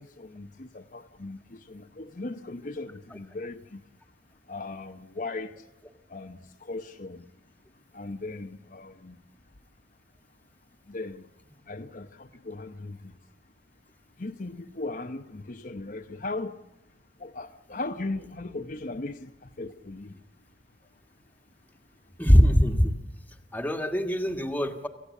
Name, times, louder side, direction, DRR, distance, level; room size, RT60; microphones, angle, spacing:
voice 1, 0.0-3.8 4.5-5.5 6.1-7.2 7.9-9.2 10.9-11.2 11.7-13.1 14.2-16.5 17.2-19.3 19.6-20.2, left 2 dB, 45° left, 0.9 m, -38 dB
voice 2, 22.2-22.9 23.5-24.9, equal, 10° left, 1.7 m, -21 dB
27.5 x 15.5 x 8.4 m
head